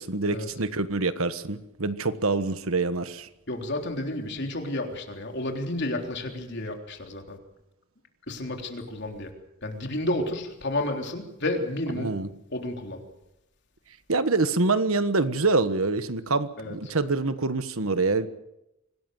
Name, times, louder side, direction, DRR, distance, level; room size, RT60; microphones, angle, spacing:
voice 1, 0.0-3.3 12.0-12.3 14.1-18.3, right 3 dB, 75° right, 11 dB, 1.4 m, -25 dB
voice 2, 3.5-7.4 8.3-9.3 9.6-12.2 12.5-13.0 16.6-16.8, left 1 dB, 50° left, 3 dB, 3.7 m, -31 dB
25.5 x 18.0 x 7.9 m, 0.89 s
head